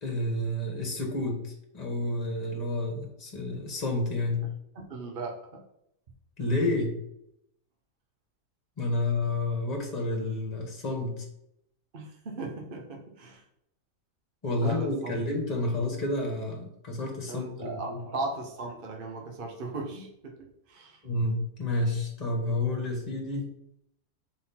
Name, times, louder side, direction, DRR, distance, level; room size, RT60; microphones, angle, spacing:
voice 1, 0.0-4.5 6.4-7.0 8.8-11.2 14.4-18.0 21.0-23.5, left 2 dB, 25° left, 0 dB, 1.6 m, -30 dB
voice 2, 4.7-5.6 11.9-13.4 14.5-15.1 17.3-21.0, right 3 dB, 40° right, 0 dB, 0.9 m, -37 dB
4.6 x 3.9 x 5.7 m, 0.76 s
omnidirectional pair, 1.7 m